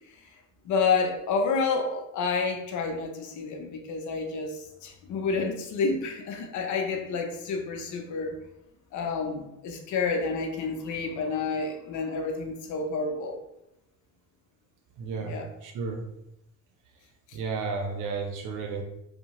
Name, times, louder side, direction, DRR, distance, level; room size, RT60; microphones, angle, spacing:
voice 1, 0.7-8.3 8.9-13.3 15.2-15.5, left 4 dB, 75° left, 3 dB, 0.6 m, -29 dB
voice 2, 15.0-15.4 15.6-16.0 17.3-18.8, right 4 dB, 85° right, 3 dB, 0.6 m, -32 dB
2.7 x 2.1 x 2.9 m, 0.83 s
cardioid pair, 90°, 30 cm